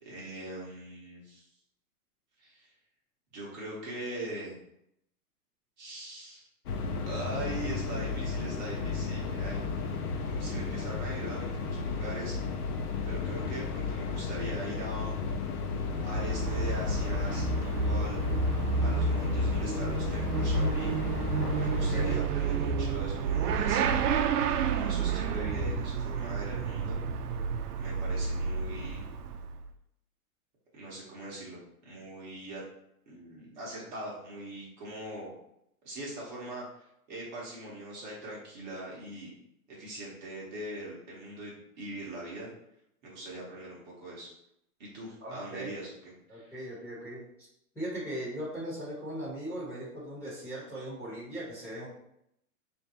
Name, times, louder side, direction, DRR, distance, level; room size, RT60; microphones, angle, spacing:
voice 1, 0.0-1.5 2.4-2.7 3.3-4.6 5.8-6.5 7.1-9.7 10.3-12.4 13.0-15.1 16.0-18.2 18.8-21.0 21.5-27.0 27.8-29.0 30.7-32.6 33.1-35.3 35.8-36.6 37.1-39.3 39.7-42.5 43.0-44.3 44.8-46.6, right 1 dB, 30° right, -5 dB, 0.9 m, -41 dB
sound 1, 6.7-22.2, left 4 dB, 80° left, 0.7 m, -33 dB
Motorcycle / Accelerating revving vroom, 15.8-29.7, right 4 dB, 80° right, 0.6 m, -30 dB
voice 2, 45.2-45.7 46.3-47.5 47.7-51.9, right 1 dB, 5° left, -10 dB, 0.9 m, -39 dB
3.4 x 2.6 x 4.1 m, 0.77 s
hypercardioid pair, 160°, 45 cm